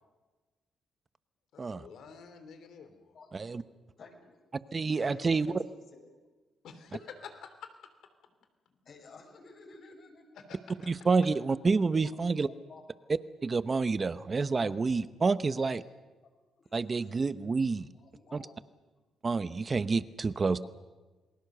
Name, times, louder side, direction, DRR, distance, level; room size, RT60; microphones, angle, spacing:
voice 1, 1.5-3.1 6.6-7.5 10.3-10.9, left 6 dB, 70° left, 8 dB, 3.1 m, -48 dB
voice 2, 4.0-4.4 5.0-6.1 8.7-10.4 12.0-12.2 12.5-12.8 14.6-14.7 15.4-15.8 16.2-16.4 16.6-17.2 17.9-18.6 20.6-20.7, left 4 dB, 55° left, 2 dB, 6.7 m, -53 dB
voice 3, 4.7-5.5 10.9-12.5 13.4-15.8 16.7-17.9 18.3-18.4 19.2-20.7, right 4 dB, 30° right, 14 dB, 0.9 m, -28 dB
28.5 x 20.0 x 6.8 m, 1.3 s
cardioid pair, 90°, 0 cm